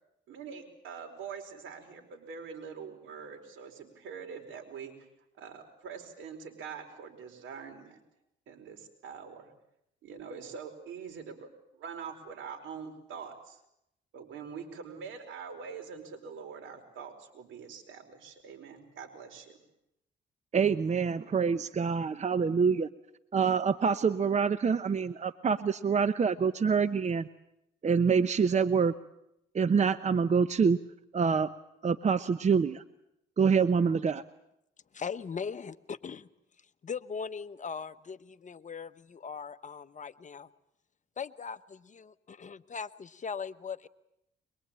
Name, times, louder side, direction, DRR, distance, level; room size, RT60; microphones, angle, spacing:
voice 1, 0.3-4.9 5.3-8.0 8.5-9.5 10.0-11.5 11.7-13.6 14.1-19.6, right 6 dB, 80° right, 5 dB, 4.7 m, -44 dB
voice 2, 20.5-22.9 23.3-27.3 27.8-28.9 29.5-30.8 31.1-31.5 31.8-32.8 33.4-34.2, right 6 dB, 35° right, 13 dB, 0.9 m, -26 dB
voice 3, 34.9-36.3 36.8-40.5 41.2-43.9, left 6 dB, 40° left, 12 dB, 1.0 m, -39 dB
23.0 x 22.5 x 8.8 m, 0.80 s
cardioid pair, 90°, 20 cm